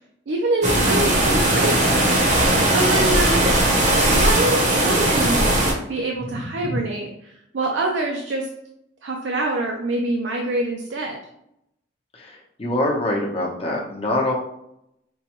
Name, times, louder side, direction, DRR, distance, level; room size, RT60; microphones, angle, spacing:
voice 1, 0.3-1.9 2.7-3.5 4.1-5.6 5.9-8.5 9.0-11.2, right 2 dB, 75° right, 1 dB, 0.5 m, -25 dB
sound 1, 0.6-5.7, right 1 dB, 40° right, 0.8 m, -18 dB
voice 2, 6.3-6.8 12.1-14.3, left 1 dB, 30° left, -2 dB, 0.8 m, -25 dB
5.3 x 2.2 x 2.9 m, 0.78 s
head